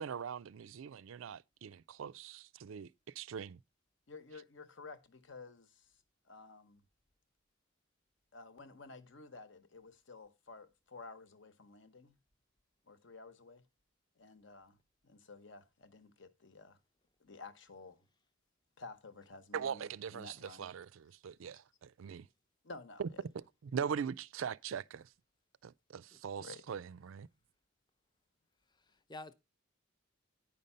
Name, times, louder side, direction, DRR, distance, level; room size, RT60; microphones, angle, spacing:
voice 1, 0.0-3.6 19.5-22.3 23.0-25.1 25.6-27.3, right 7 dB, 80° right, 0.4 m, -41 dB
voice 2, 4.1-5.9 6.3-6.8 8.3-12.2 12.9-13.6 14.2-14.8 15.0-16.8 17.2-18.0 18.8-20.7 22.6-23.2 26.4-26.6, left 3 dB, 65° left, 0.9 m, -52 dB
voice 3, 26.1-26.5 28.7-29.3, left 2 dB, 20° left, 0.6 m, -51 dB
9.8 x 5.2 x 5.5 m
head